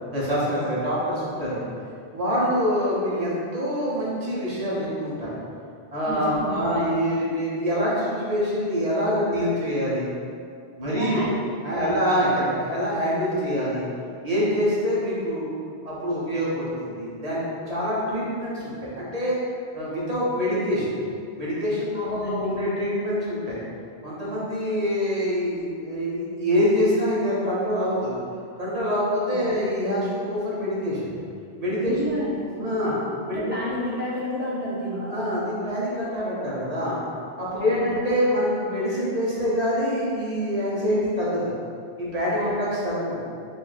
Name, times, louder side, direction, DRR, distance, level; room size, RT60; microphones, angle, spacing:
voice 1, 0.1-1.7 2.1-5.3 5.9-10.1 10.8-11.2 11.6-13.8 14.2-15.5 15.8-19.4 19.7-20.9 21.4-23.6 24.0-28.2 28.6-31.1 31.6-32.0 32.6-32.9 33.3-33.4 35.0-37.0 37.4-41.6 42.0-43.2, equal, 40° right, -8 dB, 0.8 m, -25 dB
voice 2, 6.1-6.9 10.8-11.3 11.7-11.9 21.9-22.7 29.0-29.5 31.9-32.5 33.3-35.1 37.5-38.0 42.4-42.6, equal, 15° right, -8 dB, 0.4 m, -31 dB
2.6 x 2.5 x 4.0 m, 2.3 s
omnidirectional pair, 1.1 m